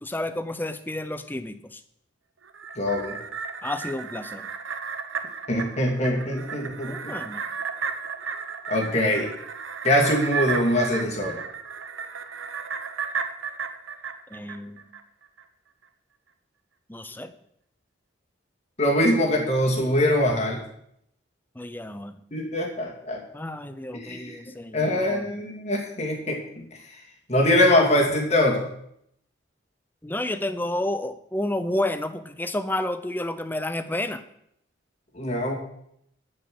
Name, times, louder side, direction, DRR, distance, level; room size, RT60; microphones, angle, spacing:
voice 1, 0.0-1.8 3.6-4.5 6.9-7.4 14.3-14.9 16.9-17.3 21.6-22.2 23.3-25.3 30.0-34.2, left 1 dB, 10° left, 11 dB, 0.6 m, -30 dB
sound 1, 2.4-15.0 15.4-15.5, right 6 dB, 80° right, 0.9 m, -33 dB
voice 2, 2.8-3.2 5.5-7.1 8.7-9.3 9.8-11.4 18.8-20.6 22.3-23.2 23.9-24.4 24.7-26.6 27.3-28.7 35.1-35.5, left 1 dB, 35° left, 0 dB, 2.4 m, -23 dB
12.5 x 5.6 x 7.8 m, 0.73 s
head